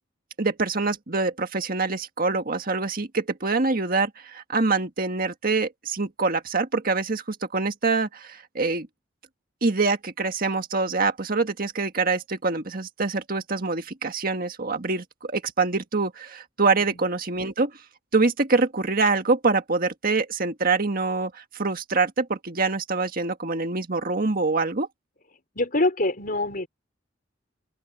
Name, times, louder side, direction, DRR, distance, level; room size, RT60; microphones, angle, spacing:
voice 1, 0.4-8.9 9.6-17.7 18.1-24.9, right 3 dB, 50° right, 1.7 m, -25 dB
voice 2, 25.5-26.7, left 2 dB, 45° left, 4.5 m, -24 dB
open air
head